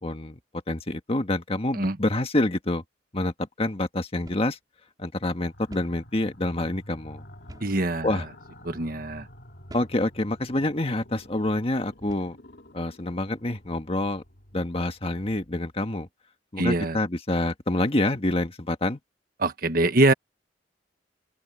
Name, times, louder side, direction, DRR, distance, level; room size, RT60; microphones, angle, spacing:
voice 1, 0.0-0.4 0.7-2.8 3.1-4.6 5.0-7.2 8.0-8.2 9.7-12.4 12.7-14.2 14.5-16.1 16.5-19.0, left 1 dB, 35° left, 1.5 m, -27 dB
sound 1, 4.3-4.6 4.9-5.0 5.7-6.0 7.5-7.8 8.5-8.7 9.7-10.0 10.8-11.0 12.0-12.4, equal, 20° right, 5.6 m, -47 dB
sound 2, 5.3-15.7, left 1 dB, 60° left, 3.0 m, -50 dB
voice 2, 7.6-8.2 8.6-9.3 16.6-17.0 19.4-20.1, right 2 dB, 50° right, 1.3 m, -23 dB
open air
head